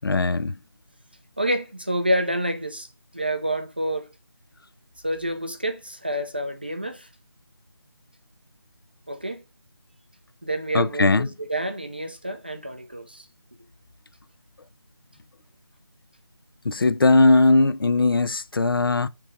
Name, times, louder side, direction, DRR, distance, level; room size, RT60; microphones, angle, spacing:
voice 1, 0.0-0.5 10.7-11.3 16.7-19.1, left 3 dB, 55° left, 0.4 m, -19 dB
voice 2, 1.4-2.9 3.1-4.1 5.0-7.1 9.1-9.4 10.4-13.3, right 1 dB, 25° right, 0.4 m, -28 dB
6.9 x 3.2 x 4.9 m
figure-of-eight pair, 170°, 14 cm